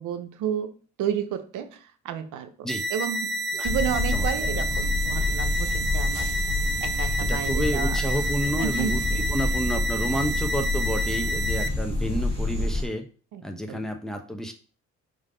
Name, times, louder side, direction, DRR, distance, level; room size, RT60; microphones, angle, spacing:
voice 1, 0.0-8.0 8.4-9.2 11.6-11.7 13.3-13.4 13.7-13.8, right 8 dB, 85° right, 9 dB, 0.8 m, -32 dB
sound 1, 2.7-11.7, right 1 dB, 35° right, 0.6 m, -29 dB
sound 2, 3.7-12.8, left 2 dB, 20° left, 2.3 m, -28 dB
voice 2, 7.2-13.0 13.4-14.5, equal, ahead, 3 dB, 1.0 m, -30 dB
5.2 x 4.0 x 5.0 m, 0.38 s
cardioid pair, 90°, 30 cm